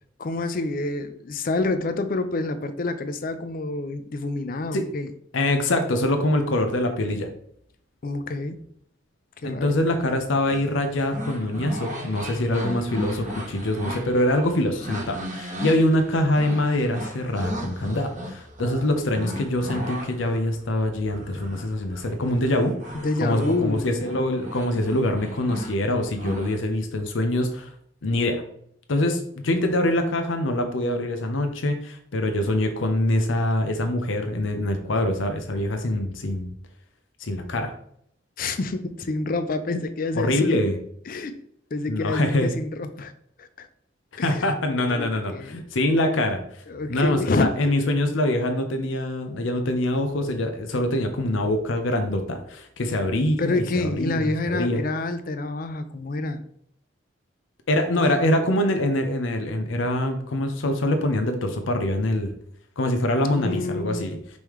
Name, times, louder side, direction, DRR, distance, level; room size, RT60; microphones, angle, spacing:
voice 1, 0.2-5.1 8.0-8.6 9.4-9.7 22.9-23.9 38.4-40.6 41.1-41.4 41.7-43.1 43.4-43.7 44.2-44.5 44.8-45.6 46.7-47.5 53.4-56.4 63.3-64.1, left 2 dB, 45° left, 10 dB, 0.4 m, -28 dB
voice 2, 5.3-7.3 9.4-22.8 23.2-27.7 28.0-28.4 28.9-36.5 37.2-37.7 40.1-40.8 41.9-42.5 44.2-46.4 46.9-54.8 57.7-62.3 62.8-64.2, left 1 dB, 85° left, 6 dB, 0.7 m, -24 dB
sound 1, 10.4-26.6, equal, 40° right, 1.0 m, -36 dB
5.3 x 3.2 x 3.1 m, 0.67 s
head